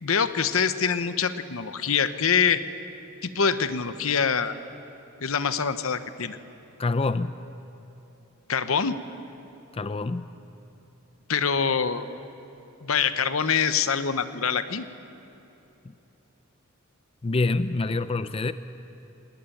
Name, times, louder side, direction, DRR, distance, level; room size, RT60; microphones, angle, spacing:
voice 1, 0.0-2.6 3.2-4.5 5.2-6.4 8.5-9.0 11.3-12.0 12.8-14.8, left 6 dB, 75° left, 11 dB, 0.9 m, -25 dB
voice 2, 6.8-7.4 9.7-10.3 15.8-15.9 17.2-18.5, left 3 dB, 25° left, 12 dB, 0.4 m, -26 dB
19.0 x 19.0 x 9.1 m, 3.0 s
head